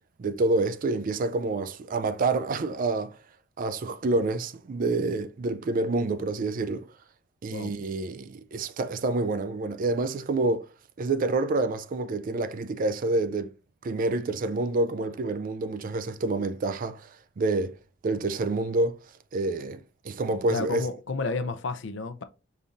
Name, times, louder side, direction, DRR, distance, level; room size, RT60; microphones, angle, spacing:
voice 1, 0.2-3.1 3.6-6.9 7.4-10.7 11.0-13.5 13.8-17.1 17.4-17.8 18.0-19.0 19.3-20.9, right 2 dB, 40° right, 0.3 m, -28 dB
voice 2, 20.5-22.2, left 3 dB, 60° left, 0.5 m, -31 dB
5.3 x 4.0 x 2.5 m
head